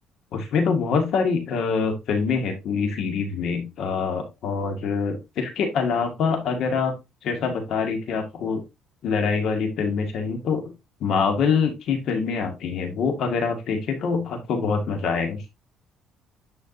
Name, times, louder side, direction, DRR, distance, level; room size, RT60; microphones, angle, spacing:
voice 1, 0.3-6.9 7.2-8.6 9.0-10.7 11.0-15.4, left 5 dB, 65° left, 5 dB, 1.8 m, -25 dB
10.0 x 5.0 x 2.6 m, 0.23 s
cardioid pair, 100°, 0 cm